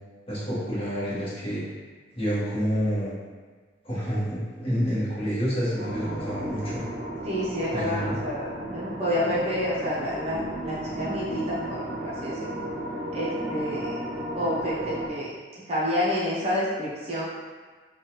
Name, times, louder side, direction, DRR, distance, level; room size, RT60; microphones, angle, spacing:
voice 1, 0.3-1.6 2.1-3.1 3.8-6.8 7.7-8.2, equal, 30° left, -11 dB, 1.0 m, -28 dB
sound 1, 5.8-15.1, right 1 dB, 75° right, 0.5 m, -34 dB
voice 2, 7.2-12.5 13.1-14.0 14.3-17.2, equal, 30° right, -8 dB, 0.6 m, -29 dB
3.1 x 2.3 x 2.8 m, 1.4 s
head